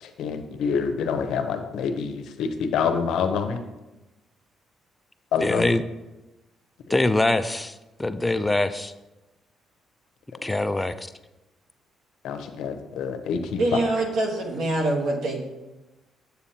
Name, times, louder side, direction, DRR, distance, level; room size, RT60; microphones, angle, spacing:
voice 1, 0.0-3.6 5.3-5.6 6.9-7.0 12.2-13.8, left 6 dB, 80° left, 8 dB, 0.7 m, -27 dB
voice 2, 5.4-5.8 6.9-7.7 8.0-8.9 10.4-10.9, left 2 dB, 15° left, 11 dB, 0.4 m, -23 dB
voice 3, 13.6-15.4, right 2 dB, 80° right, 2 dB, 1.3 m, -24 dB
7.9 x 6.9 x 2.9 m, 1.0 s
cardioid pair, 90°, 0 cm